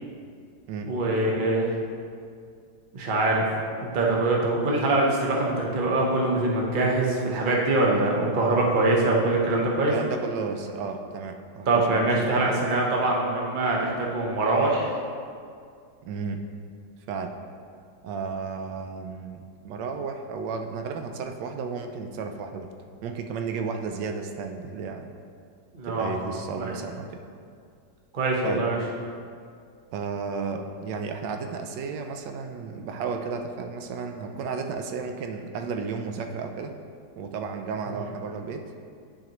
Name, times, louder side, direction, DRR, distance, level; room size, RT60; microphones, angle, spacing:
voice 1, 0.9-1.8 2.9-3.4 3.9-9.9 11.7-14.9 25.7-26.1 26.5-26.7 28.1-28.8, right 2 dB, 40° right, -2 dB, 0.8 m, -23 dB
voice 2, 9.9-12.7 16.0-16.4 17.1-17.3 18.0-22.7 23.0-25.1 25.8-27.2 28.4-28.7 29.9-36.7 37.2-38.6, right 5 dB, 80° right, 5 dB, 1.2 m, -33 dB
10.5 x 4.8 x 3.0 m, 2.3 s
omnidirectional pair, 1.9 m